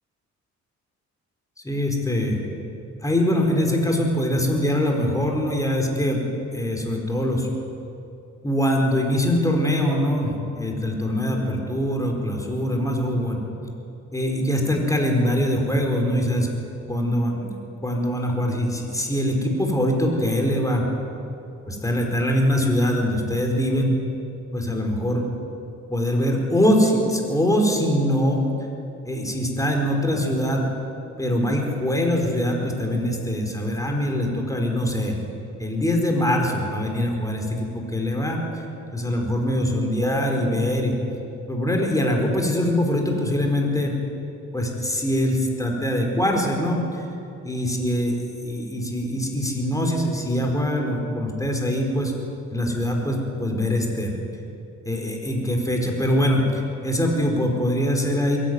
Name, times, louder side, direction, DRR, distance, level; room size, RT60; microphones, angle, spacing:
voice 1, 1.6-2.4 3.0-6.2 6.5-7.5 8.4-13.4 14.1-16.5 16.9-17.6 17.8-20.9 21.7-24.0 24.5-25.3 25.9-28.5 29.0-30.6 31.2-35.2 35.6-38.6 38.9-40.9 41.4-44.0 44.5-47.1 47.4-48.2 48.4-52.1 52.5-54.2 54.8-58.4, equal, 10° left, 1 dB, 4.5 m, -23 dB
22.0 x 14.0 x 9.4 m, 2.8 s
cardioid pair, 90°, 30 cm